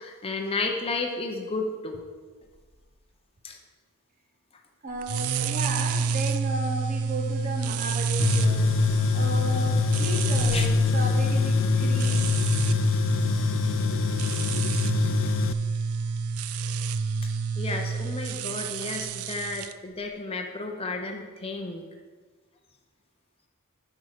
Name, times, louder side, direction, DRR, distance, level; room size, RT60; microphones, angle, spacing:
voice 1, 0.0-2.0 3.4-3.6 10.5-10.6 17.6-21.8, left 3 dB, 25° left, 2 dB, 0.8 m, -32 dB
voice 2, 4.8-8.7 9.1-12.3, right 2 dB, 40° right, 1 dB, 1.0 m, -34 dB
sound 1, 5.0-19.7, right 5 dB, 90° right, 0.4 m, -29 dB
Tools, 8.2-15.5, left 5 dB, 65° left, 0.4 m, -24 dB
8.1 x 6.2 x 5.0 m, 1.4 s
head